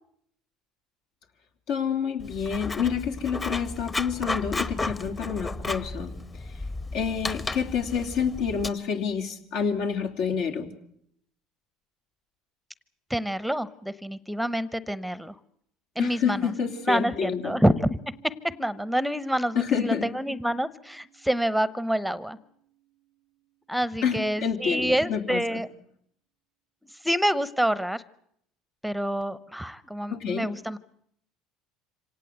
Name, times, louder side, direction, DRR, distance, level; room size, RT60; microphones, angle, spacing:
voice 1, 1.7-6.1 6.9-10.7 16.0-17.5 19.5-20.1 24.0-25.6 30.1-30.5, left 7 dB, 70° left, 4 dB, 3.1 m, -28 dB
Writing, 2.2-8.7, left 2 dB, 20° left, 1.3 m, -33 dB
voice 2, 13.1-15.4 16.0-16.5 16.9-22.4 23.7-25.7 27.0-28.0 28.8-30.8, equal, ahead, 17 dB, 0.9 m, -27 dB
Piano, 16.3-23.5, right 10 dB, 50° left, 7.2 m, -54 dB
26.0 x 18.0 x 8.1 m, 0.69 s
hypercardioid pair, 80°, 0 cm